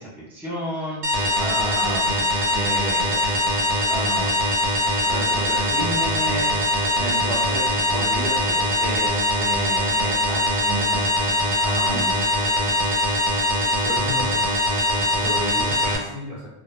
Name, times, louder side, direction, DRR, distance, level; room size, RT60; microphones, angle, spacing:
voice 1, 0.0-3.3 3.9-4.5 5.0-11.0 11.6-12.2, right 1 dB, 5° right, -6 dB, 0.4 m, -32 dB
sound 1, 1.0-16.0, left 1 dB, 80° right, 0.9 m, -22 dB
voice 2, 13.7-14.6 15.1-16.5, left 1 dB, 50° right, -9 dB, 0.9 m, -32 dB
2.1 x 2.1 x 2.9 m, 0.92 s
omnidirectional pair, 1.2 m